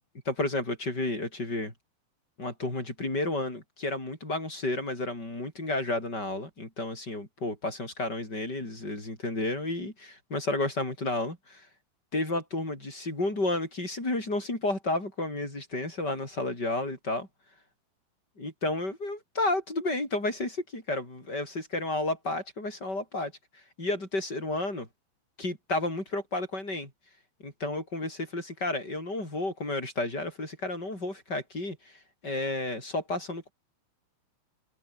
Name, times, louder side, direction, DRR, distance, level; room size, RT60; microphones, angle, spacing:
voice 1, 0.2-1.7 2.4-11.7 12.1-17.3 18.4-23.3 23.8-24.9 25.4-26.9 27.4-33.5, left 2 dB, 20° left, 8.1 m, -32 dB
omnidirectional pair, 5.9 m